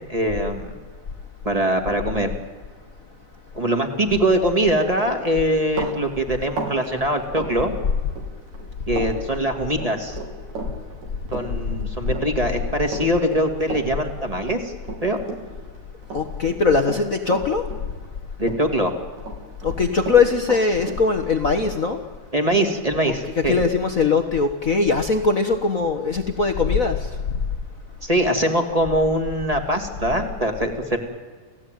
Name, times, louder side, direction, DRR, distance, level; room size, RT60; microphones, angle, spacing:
voice 1, 0.1-0.7 1.4-2.3 3.5-7.7 8.9-10.2 11.3-14.7 15.0-15.2 18.4-18.9 22.3-23.6 28.0-31.0, right 1 dB, 15° right, 5 dB, 2.1 m, -22 dB
Run, 4.9-8.3 8.5-9.1 9.4-15.7 16.0-18.2 18.4-19.4 19.6-23.0, right 4 dB, 65° right, 4.7 m, -34 dB
voice 2, 16.1-17.6 19.6-22.0 23.0-27.0, left 4 dB, 60° left, 5 dB, 0.8 m, -21 dB
29.0 x 16.5 x 9.3 m, 1.5 s
omnidirectional pair, 3.6 m